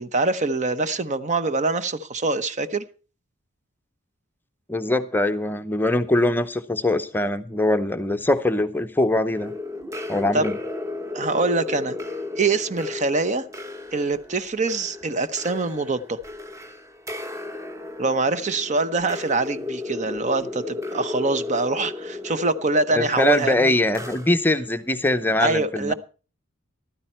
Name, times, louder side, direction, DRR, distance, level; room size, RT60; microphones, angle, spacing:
voice 1, 0.0-2.8 10.3-10.5 11.1-12.0 12.3-13.4 13.9-16.2 18.0-23.7 25.4-25.9, right 3 dB, 35° right, 0.8 m, -24 dB
voice 2, 4.7-9.5 10.1-10.5 22.9-25.9, left 1 dB, 10° left, 0.7 m, -22 dB
sound 1, 9.3-24.7, left 2 dB, 15° right, 1.2 m, -34 dB
14.5 x 12.5 x 4.4 m
head